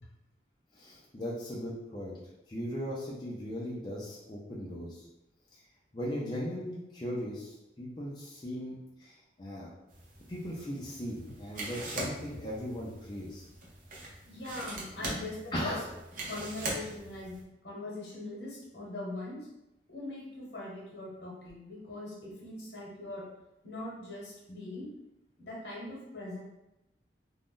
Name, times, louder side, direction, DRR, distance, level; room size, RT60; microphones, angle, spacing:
voice 1, 0.7-2.2 2.5-5.0 5.5-5.6 5.9-9.7 10.3-13.4 15.0-15.1 15.5-15.8, equal, 25° left, -6 dB, 0.4 m, -38 dB
sound 1, 9.9-17.4, right 1 dB, 50° right, 0.6 m, -42 dB
voice 2, 14.3-15.7 16.3-17.4 17.6-19.4 19.9-23.2 23.6-24.9 25.4-26.4, left 2 dB, 70° left, -4 dB, 1.0 m, -41 dB
2.5 x 2.2 x 3.6 m, 0.91 s
head